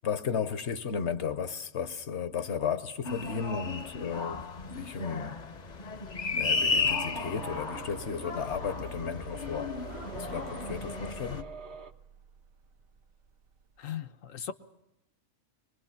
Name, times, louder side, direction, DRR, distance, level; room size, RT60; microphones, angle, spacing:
voice 1, 0.0-5.4 6.4-9.8 10.1-11.5, left 6 dB, 60° left, 1.1 m, -34 dB
sound 1, 3.0-11.4, left 4 dB, 40° left, 0.8 m, -34 dB
sound 2, 6.5-11.9, right 4 dB, 55° right, 1.2 m, -45 dB
sound 3, 6.6-13.8, equal, 85° right, 1.3 m, -49 dB
voice 2, 13.8-14.5, left 9 dB, 75° left, 1.3 m, -38 dB
24.0 x 21.0 x 5.8 m
omnidirectional pair, 1.4 m